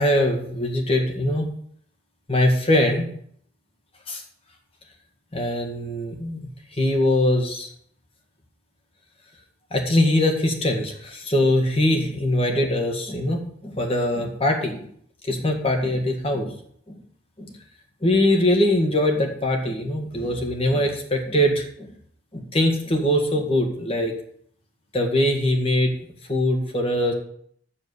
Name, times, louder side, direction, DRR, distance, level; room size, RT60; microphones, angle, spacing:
voice 1, 0.0-1.5 2.3-3.1 4.1-4.2 5.3-6.5 6.8-7.7 9.7-14.8 15.2-16.5 16.9-17.0 17.4-17.5 18.0-21.9 22.3-24.1 24.9-25.9 26.3-27.1, left 1 dB, 35° left, 3 dB, 1.7 m, -22 dB
7.4 x 7.3 x 6.9 m, 0.64 s
head